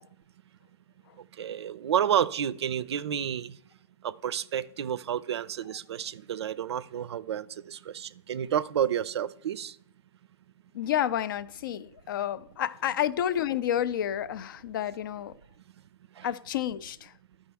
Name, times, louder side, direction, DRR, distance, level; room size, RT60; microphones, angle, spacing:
voice 1, 1.2-3.5 4.0-9.8 16.2-16.3, right 9 dB, 65° right, 0.4 m, -30 dB
voice 2, 10.7-15.3 16.2-17.1, left 10 dB, 50° left, 0.4 m, -30 dB
12.5 x 5.3 x 3.4 m
hypercardioid pair, 135°, 15 cm